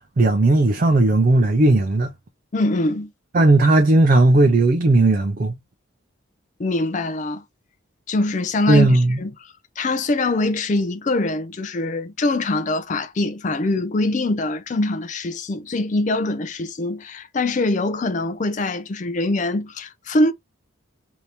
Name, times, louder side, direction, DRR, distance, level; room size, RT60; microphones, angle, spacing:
voice 1, 0.2-2.1 3.3-5.5 8.7-9.2, right 2 dB, 40° right, 0.4 m, -16 dB
voice 2, 2.5-3.1 6.6-7.4 8.1-20.3, left 2 dB, 35° left, 0.4 m, -23 dB
2.9 x 2.7 x 3.2 m
head